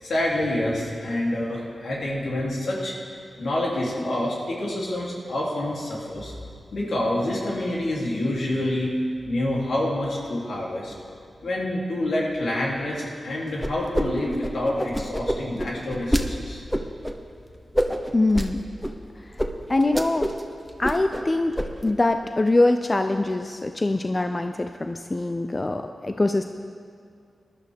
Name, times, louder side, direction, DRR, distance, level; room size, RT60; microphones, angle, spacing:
voice 1, 0.0-2.9 3.4-6.3 6.7-8.9 9.3-10.9 11.4-16.6, left 1 dB, 80° left, -4 dB, 3.0 m, -27 dB
sound 1, 13.6-14.0 14.3-16.2 16.7-17.1 17.7-18.5 18.8-18.9 19.4-19.5 19.8-20.4 20.7-21.2 21.6-21.9, equal, ahead, 1.0 m, -26 dB
voice 2, 18.1-18.6 19.2-19.4 19.7-20.3 20.8-21.5 21.8-26.5, left 2 dB, 35° left, 7 dB, 0.5 m, -23 dB
19.0 x 11.5 x 3.6 m, 2.3 s
cardioid pair, 55°, 0 cm